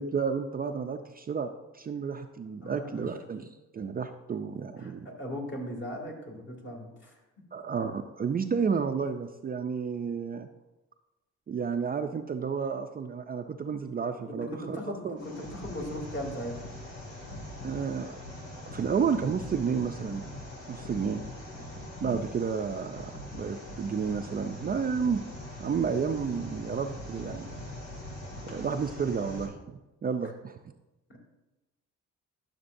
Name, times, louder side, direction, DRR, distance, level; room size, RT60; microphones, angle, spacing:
voice 1, 0.0-5.1 7.5-10.5 11.5-15.2 17.6-18.2 18.7-20.2 20.7-21.2 22.0-25.2 25.6-27.5 28.4-30.6, right 6 dB, 30° right, 6 dB, 0.4 m, -31 dB
voice 2, 2.6-3.0 4.8-7.1 14.3-16.6 31.1-31.2, equal, 40° left, 0 dB, 2.3 m, -38 dB
sound 1, 15.2-29.5, left 1 dB, 85° left, 2.3 m, -42 dB
11.0 x 6.6 x 2.6 m, 1.0 s
cardioid pair, 90°, 30 cm